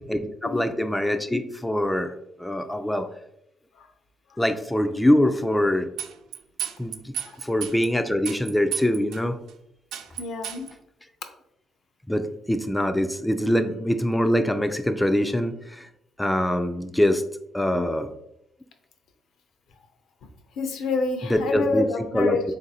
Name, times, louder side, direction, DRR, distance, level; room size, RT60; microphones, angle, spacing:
voice 1, 0.1-2.1 2.4-3.1 4.4-5.9 6.8-7.1 7.4-9.4 12.1-15.9 16.2-17.2 17.5-18.1 21.2-22.4, left 1 dB, 5° left, 7 dB, 0.3 m, -24 dB
sound 1, 6.0-7.9 8.3-9.2 9.5-9.6 9.9-10.7, right 9 dB, 85° right, 0.3 m, -32 dB
voice 2, 10.2-10.6 17.7-17.9 20.6-22.4, left 4 dB, 80° left, 6 dB, 0.6 m, -27 dB
3.6 x 2.6 x 4.1 m, 0.80 s
cardioid pair, 90°, 0 cm